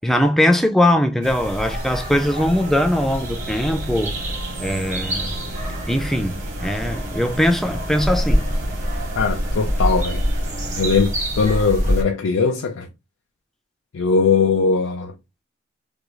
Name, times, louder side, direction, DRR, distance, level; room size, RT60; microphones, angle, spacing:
voice 1, 0.0-4.1 4.6-5.4 5.9-8.5, left 1 dB, ahead, 0.3 m, -20 dB
sound 1, 1.2-12.0, equal, 40° right, 0.9 m, -26 dB
sound 2, 2.5-10.9, right 2 dB, 70° right, 0.5 m, -38 dB
voice 2, 9.2-10.2 10.8-12.9 13.9-15.1, left 5 dB, 90° left, 0.4 m, -20 dB
3.5 x 2.3 x 3.0 m
head